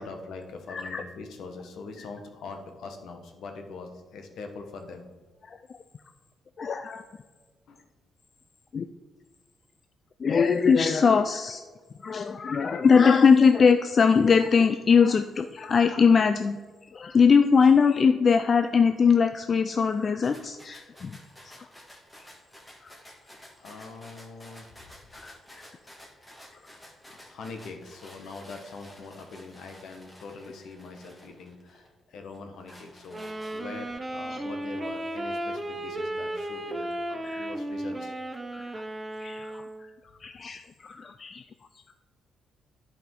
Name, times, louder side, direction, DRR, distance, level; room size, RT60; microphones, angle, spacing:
voice 1, 0.0-5.1 7.7-7.8 10.3-10.4 23.6-24.7 26.7-27.0 27.2-38.1, left 4 dB, 70° left, 5 dB, 1.1 m, -43 dB
voice 2, 0.7-1.0 5.4-5.6 6.6-7.0 8.7-8.9 10.2-11.6 12.0-16.6 16.9-21.2 21.4-21.6 25.1-25.6 37.2-37.5 38.5-38.6 39.2-39.5 40.2-41.4, left 5 dB, 45° left, 8 dB, 0.3 m, -21 dB
sound 1, 20.2-31.9 32.3-33.9, equal, 10° left, 1.7 m, -51 dB
Wind instrument woodwind instrument, 33.1-39.9, right 1 dB, 20° right, 0.7 m, -34 dB
10.5 x 5.1 x 3.7 m, 1.4 s
cardioid pair, 90°, 0 cm